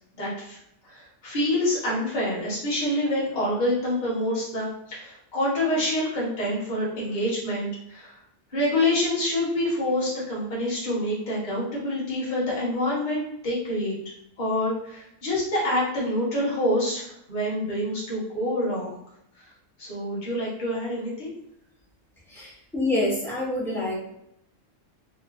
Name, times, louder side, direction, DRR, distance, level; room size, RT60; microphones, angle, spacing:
voice 1, 0.2-0.6 0.8-8.1 8.5-13.9 14.4-18.9 19.8-21.3, left 1 dB, 40° left, -7 dB, 1.0 m, -27 dB
voice 2, 22.3-24.0, left 1 dB, 5° left, -7 dB, 0.5 m, -27 dB
2.9 x 2.2 x 2.4 m, 0.77 s
omnidirectional pair, 1.3 m